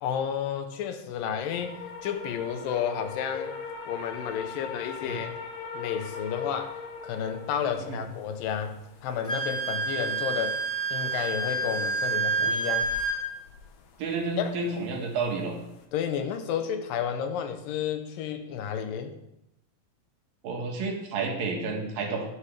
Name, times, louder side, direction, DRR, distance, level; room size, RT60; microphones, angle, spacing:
voice 1, 0.0-5.4 5.7-6.8 7.0-10.6 10.9-12.9 14.4-14.5 15.9-19.1, left 8 dB, 90° left, 8 dB, 2.7 m, -31 dB
sound 1, 1.5-15.8, left 5 dB, 65° left, 2.0 m, -42 dB
Wind instrument woodwind instrument, 9.2-13.2, right 3 dB, 5° left, 2.3 m, -28 dB
voice 2, 14.0-15.6 20.4-22.2, right 3 dB, 85° right, 1 dB, 3.5 m, -30 dB
12.0 x 10.0 x 3.5 m, 0.85 s
omnidirectional pair, 3.9 m